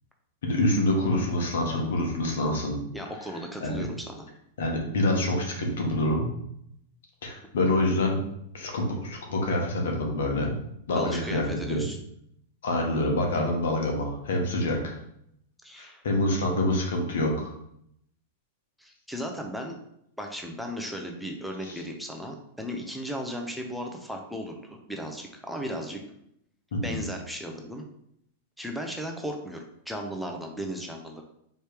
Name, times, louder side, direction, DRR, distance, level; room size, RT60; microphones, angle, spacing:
voice 1, 0.4-2.8 3.6-3.8 4.6-6.3 7.2-8.2 8.5-10.6 10.9-11.8 12.6-15.0 15.8-17.5 21.7-21.8 26.7-27.0, left 1 dB, 80° left, 1 dB, 1.3 m, -26 dB
voice 2, 2.9-4.3 10.9-12.0 15.6-16.0 18.8-19.7 20.2-26.0 26.8-27.8 28.6-31.2, equal, ahead, 2 dB, 0.5 m, -36 dB
4.2 x 3.2 x 3.4 m, 0.74 s
supercardioid pair, 145°, 0 cm